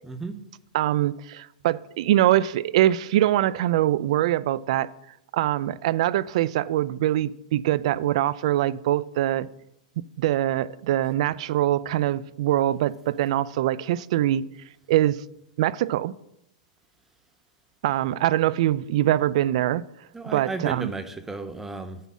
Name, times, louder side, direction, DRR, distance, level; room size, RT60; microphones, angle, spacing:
voice 1, 0.0-0.4 20.1-22.0, right 3 dB, 10° right, 0.6 m, -34 dB
voice 2, 0.7-4.9 5.3-9.5 10.2-14.4 14.9-15.2 15.6-16.1 17.8-19.8 20.3-20.9, right 13 dB, 55° right, 0.4 m, -23 dB
9.3 x 3.9 x 7.3 m
hypercardioid pair, 150°, 4 cm